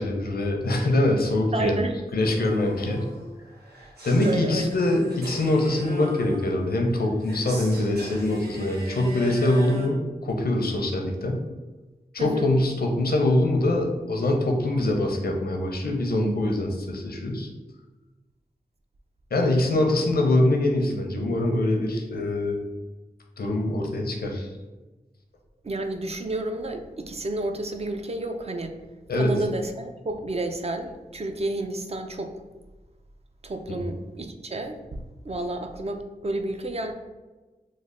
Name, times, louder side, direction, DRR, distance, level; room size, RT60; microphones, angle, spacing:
voice 1, 0.0-1.8 2.1-3.0 4.0-11.4 12.1-17.5 19.3-22.6 23.4-24.5 29.1-29.3 33.7-33.8, left 1 dB, 75° left, 2 dB, 0.6 m, -24 dB
voice 2, 1.5-2.0 2.4-2.5 3.8-3.9 4.2-4.8 12.2-12.5 25.6-28.8 29.1-32.4 33.4-36.9, right 2 dB, 40° right, 6 dB, 0.4 m, -31 dB
sound 1, 2.2-9.9, right 1 dB, 90° right, 0.8 m, -39 dB
3.2 x 2.0 x 3.7 m, 1.2 s
cardioid pair, 45°, 16 cm